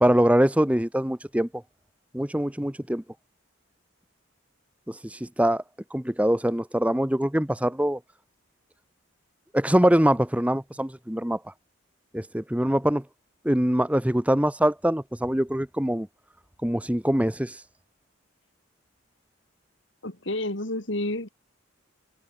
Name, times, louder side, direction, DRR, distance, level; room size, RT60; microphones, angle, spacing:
voice 1, 0.0-1.5 2.1-3.0 4.9-5.6 5.9-8.0 9.5-11.4 12.1-13.0 13.4-16.1 16.6-17.6, equal, 5° right, 1.0 m, -23 dB
voice 2, 20.0-21.3, left 1 dB, 65° left, 3.8 m, -30 dB
head